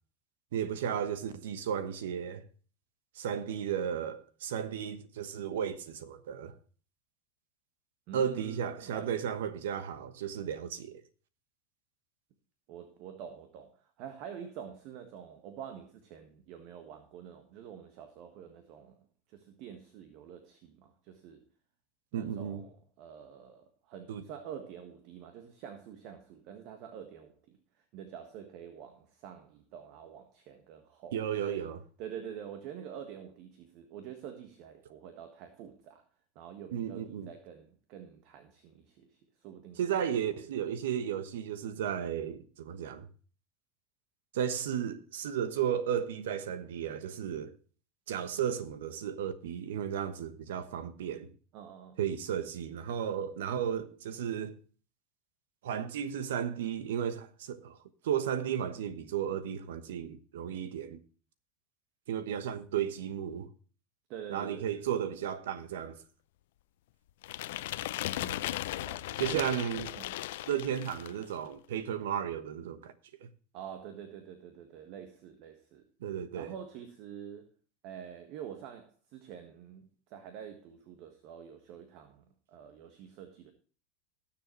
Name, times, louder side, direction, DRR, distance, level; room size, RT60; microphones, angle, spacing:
voice 1, 0.5-2.4 3.2-6.6 8.1-11.0 22.1-22.6 24.1-24.2 31.1-31.8 36.7-37.3 39.8-43.1 44.3-47.6 48.1-51.3 52.0-54.6 55.6-57.8 58.0-61.0 62.1-63.5 64.3-66.0 69.2-70.0 70.5-72.9 73.2-73.3 76.0-76.5, right 9 dB, 70° right, 1.1 m, -34 dB
voice 2, 8.1-9.3 12.7-19.0 19.3-21.4 22.1-27.6 27.9-31.7 32.0-36.0 36.3-39.8 40.3-40.4 51.5-52.0 64.1-64.9 68.1-69.5 69.9-70.1 73.5-75.8 76.3-77.5 77.8-83.5, right 8 dB, 55° right, 1.5 m, -47 dB
sound 1, 67.2-71.2, left 15 dB, 70° left, 0.6 m, -37 dB
19.0 x 7.2 x 3.1 m
hypercardioid pair, 85°, 0 cm